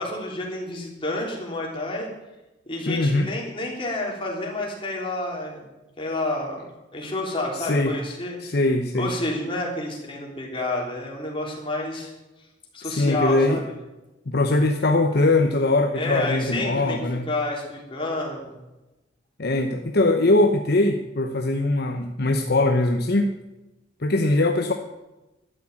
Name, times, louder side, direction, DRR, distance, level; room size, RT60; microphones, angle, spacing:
voice 1, 0.0-2.1 2.7-5.7 6.0-6.6 6.9-8.6 8.9-12.1 12.7-13.7 15.9-18.6, left 2 dB, 25° left, -2 dB, 3.6 m, -29 dB
voice 2, 2.9-3.3 7.6-7.9 8.4-9.1 12.8-13.6 14.3-17.3 19.4-23.3 24.0-24.7, left 2 dB, 55° left, 4 dB, 0.9 m, -21 dB
12.5 x 8.8 x 8.5 m, 1.0 s
head